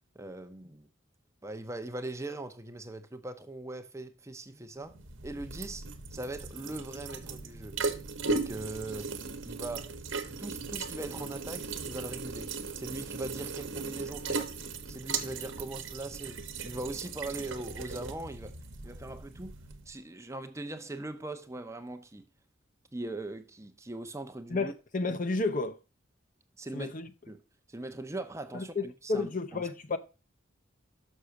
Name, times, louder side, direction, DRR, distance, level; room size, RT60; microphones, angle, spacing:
voice 1, 0.1-0.9 1.4-5.0 5.2-7.8 8.3-9.1 9.4-9.9 10.4-14.6 14.9-18.6 18.8-19.6 19.9-22.2 22.9-24.7 26.6-26.9 27.3-27.4 27.7-29.6, right 2 dB, 15° right, 0.7 m, -40 dB
sound 1, 4.9-19.9, right 4 dB, 65° right, 1.1 m, -37 dB
voice 2, 24.5-25.8 26.7-27.1 28.5-30.0, left 3 dB, 40° left, 0.7 m, -31 dB
6.5 x 6.1 x 5.7 m
head